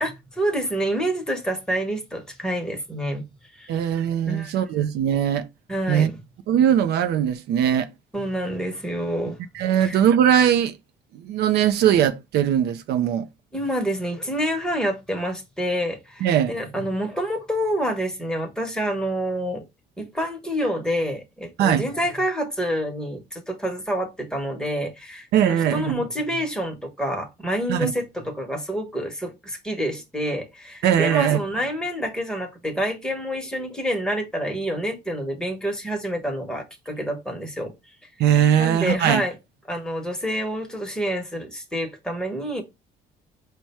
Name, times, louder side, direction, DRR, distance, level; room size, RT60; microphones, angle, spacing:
voice 1, 0.0-3.2 3.5-3.7 4.3-4.5 5.7-6.1 8.1-9.4 9.8-10.0 13.5-19.6 20.0-37.7 38.6-39.3 39.7-42.6, equal, 5° left, 1.1 m, -27 dB
voice 2, 3.7-5.5 5.9-6.1 6.5-7.9 9.5-10.8 11.1-13.3 16.2-16.5 21.6-21.9 25.3-26.0 27.7-27.9 30.8-31.4 38.2-39.2, right 9 dB, 75° right, 0.5 m, -20 dB
4.6 x 2.2 x 4.1 m
cardioid pair, 110°, 17 cm